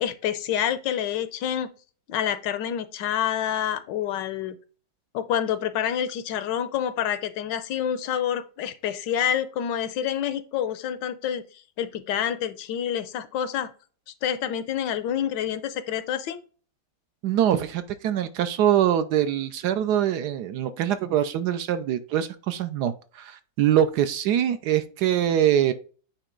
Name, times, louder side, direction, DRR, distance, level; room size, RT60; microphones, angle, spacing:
voice 1, 0.0-1.7 2.1-4.6 5.1-11.4 11.8-13.7 14.2-16.4, left 9 dB, 80° left, 13 dB, 1.3 m, -27 dB
voice 2, 17.2-25.7, right 10 dB, 70° right, 11 dB, 1.1 m, -23 dB
8.8 x 3.0 x 3.8 m, 0.38 s
omnidirectional pair, 2.0 m